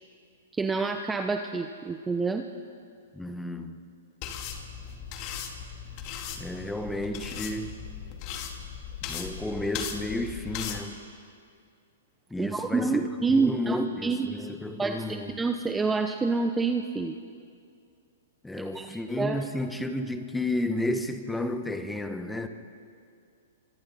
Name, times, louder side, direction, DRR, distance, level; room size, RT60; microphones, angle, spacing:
voice 1, 0.5-2.5 12.4-14.3 14.8-17.1 18.7-19.4, right 4 dB, 10° right, 6 dB, 0.9 m, -28 dB
voice 2, 3.1-3.8 6.4-7.8 9.1-11.0 12.3-15.4 18.4-22.5, left 1 dB, 5° left, 8 dB, 1.3 m, -32 dB
sound 1, 4.2-10.8, left 8 dB, 40° left, 2.5 m, -38 dB
27.0 x 25.0 x 4.2 m, 2.3 s
hypercardioid pair, 125°, 0 cm